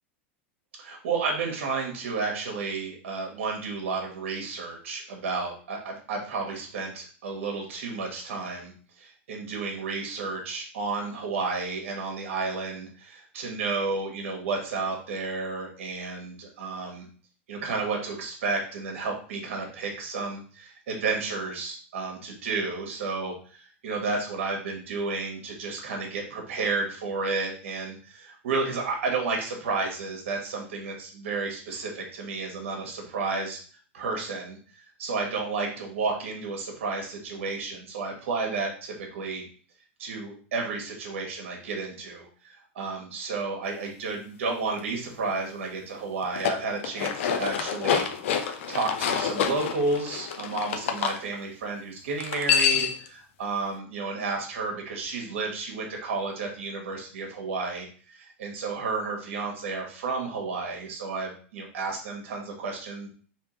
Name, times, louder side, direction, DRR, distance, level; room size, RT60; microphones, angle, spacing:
voice 1, 0.8-8.7 9.0-17.0 17.5-33.6 33.9-34.6 35.0-39.4 40.0-48.1 48.3-63.1, right 4 dB, 75° right, 1 dB, 1.3 m, -32 dB
sound 1, 46.2-51.2 52.2-53.1, left 8 dB, 75° left, 0.5 m, -27 dB
3.6 x 3.0 x 3.1 m, 0.42 s
hypercardioid pair, 115°, 7 cm